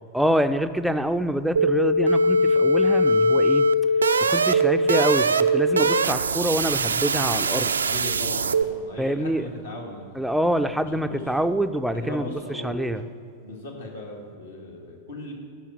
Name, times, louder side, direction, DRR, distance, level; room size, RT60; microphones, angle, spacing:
voice 1, 0.1-3.7 4.2-7.7 9.0-9.5 10.2-13.0, right 1 dB, ahead, 8 dB, 0.4 m, -26 dB
sound 1, 1.6-8.6, right 1 dB, 75° right, 0.3 m, -21 dB
voice 2, 7.8-10.4 10.9-11.2 11.9-13.1 13.4-15.3, left 2 dB, 75° left, -1 dB, 2.1 m, -37 dB
10.0 x 5.8 x 8.3 m, 2.4 s
figure-of-eight pair, 90°, 0 cm